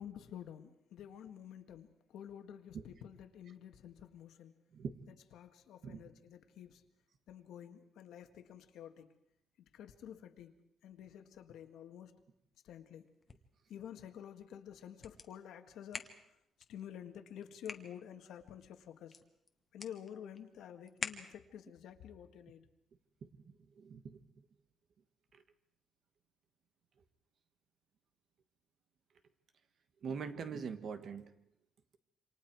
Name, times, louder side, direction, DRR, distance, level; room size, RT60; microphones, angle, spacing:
voice 1, 0.0-4.5 5.1-6.8 7.3-9.1 9.7-10.5 10.8-12.2 12.6-13.1 13.7-16.1 16.7-19.2 19.7-22.6, left 9 dB, 75° left, 7 dB, 1.7 m, -50 dB
sound 1, 13.0-21.7, left 4 dB, 25° left, 1.3 m, -50 dB
voice 2, 23.2-24.2 30.0-31.3, right 6 dB, 45° right, 9 dB, 1.5 m, -43 dB
28.0 x 26.0 x 4.7 m, 0.76 s
cardioid pair, 175°, 0 cm